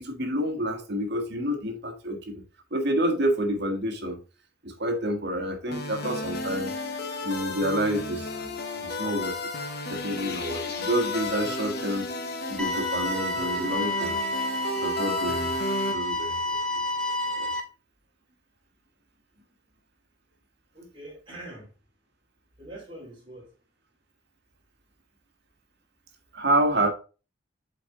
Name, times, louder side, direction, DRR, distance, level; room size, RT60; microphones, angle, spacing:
voice 1, 0.0-2.4 2.7-4.2 4.6-6.7 7.2-8.5 8.8-9.5 9.9-12.0 12.5-14.2 14.7-15.5 15.9-16.8 17.4-17.5 26.3-26.9, right 1 dB, 55° right, 1.6 m, -28 dB
sound 1, 5.7-15.9, left 2 dB, 55° left, 1.2 m, -33 dB
sound 2, 12.6-17.6, left 1 dB, 5° left, 1.0 m, -30 dB
voice 2, 20.7-21.7 22.6-23.5 26.7-26.9, right 2 dB, 25° right, 3.5 m, -42 dB
7.5 x 4.3 x 3.8 m
head